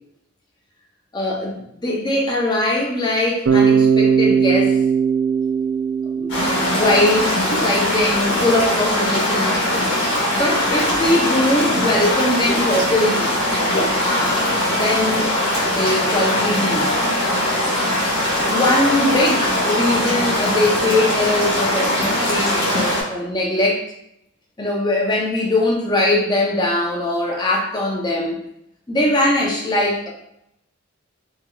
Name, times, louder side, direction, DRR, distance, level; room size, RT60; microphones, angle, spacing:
voice 1, 1.1-4.8 6.1-9.6 10.3-13.3 14.0-15.3 15.6-16.9 18.5-23.8 24.6-28.4 28.9-30.1, left 1 dB, 20° left, -2 dB, 0.5 m, -21 dB
Bass guitar, 3.5-7.5, right 6 dB, 65° right, 0.3 m, -18 dB
sound 1, 6.3-23.0, left 1 dB, 55° left, 1.1 m, -20 dB
3.6 x 2.7 x 2.2 m, 0.80 s
head